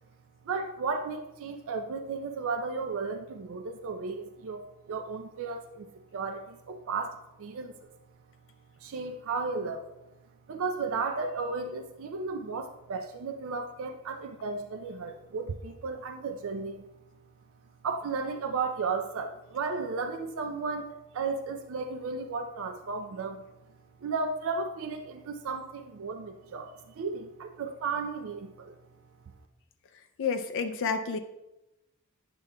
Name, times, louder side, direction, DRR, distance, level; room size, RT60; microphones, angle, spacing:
voice 1, 0.5-7.7 8.8-9.8 10.5-16.8 17.8-23.4 24.0-28.7, right 4 dB, 65° right, 6 dB, 0.4 m, -34 dB
voice 2, 30.2-31.2, left 5 dB, 60° left, 7 dB, 0.4 m, -29 dB
8.8 x 6.7 x 2.2 m, 0.96 s
head